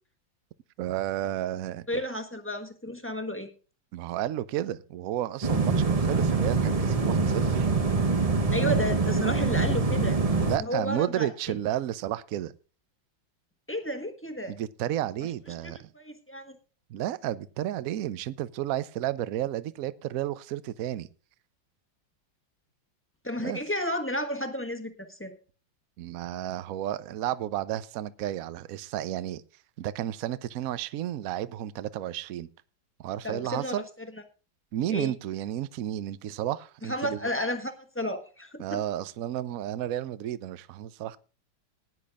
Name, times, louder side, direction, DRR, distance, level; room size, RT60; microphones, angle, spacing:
voice 1, 0.8-2.0 3.9-7.7 10.4-12.5 14.5-15.9 16.9-21.1 23.4-23.6 26.0-29.4 29.8-32.5 33.0-33.8 34.7-37.2 38.6-41.2, right 12 dB, 65° right, 0.9 m, -32 dB
voice 2, 1.9-3.5 8.5-10.2 10.6-11.3 13.7-14.5 15.9-16.6 23.2-25.4 33.2-33.8 34.9-35.1 36.8-38.8, left 1 dB, 10° left, 1.0 m, -32 dB
sound 1, 5.4-10.6, right 4 dB, 30° right, 0.6 m, -24 dB
19.5 x 10.5 x 2.4 m
omnidirectional pair, 2.1 m